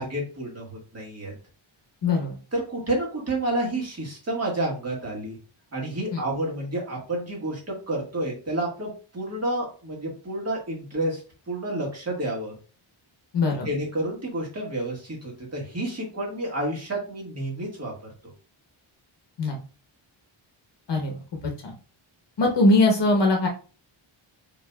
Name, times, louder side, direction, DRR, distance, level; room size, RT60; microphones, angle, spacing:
voice 1, 0.0-1.3 2.5-5.4 5.7-12.5 13.6-17.9, right 1 dB, 30° right, -2 dB, 1.6 m, -30 dB
voice 2, 2.0-2.4 6.1-6.2 13.3-13.7 19.4-19.6 20.9-21.1 21.4-21.7 22.4-23.5, left 2 dB, 55° left, 1 dB, 1.0 m, -21 dB
4.6 x 4.0 x 2.2 m, 0.36 s
wide cardioid pair, 175°, 49 cm